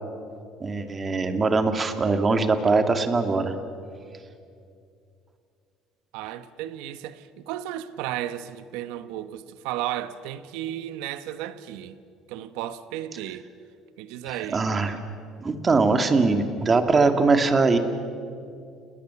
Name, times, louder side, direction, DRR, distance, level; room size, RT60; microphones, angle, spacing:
voice 1, 0.6-3.6 14.3-15.0 15.4-17.8, right 3 dB, 25° right, 2.1 m, -22 dB
voice 2, 6.1-12.0 12.3-13.5 14.0-14.6, right 12 dB, 85° right, 1.0 m, -34 dB
29.0 x 19.5 x 7.0 m
cardioid pair, 110°, 0 cm